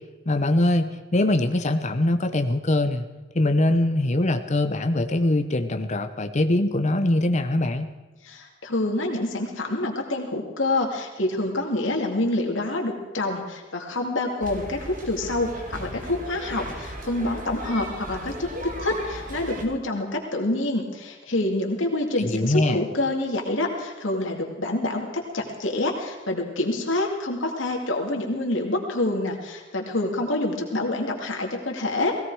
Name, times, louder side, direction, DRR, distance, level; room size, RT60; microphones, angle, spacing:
voice 1, 0.3-3.1 3.3-7.9 22.2-22.8, left 1 dB, 40° left, 8 dB, 0.9 m, -22 dB
voice 2, 8.2-32.2, left 2 dB, 90° left, 1 dB, 2.4 m, -27 dB
sound 1, 14.4-19.6, right 1 dB, 45° right, 2.6 m, -37 dB
17.5 x 17.0 x 4.9 m, 1.2 s
head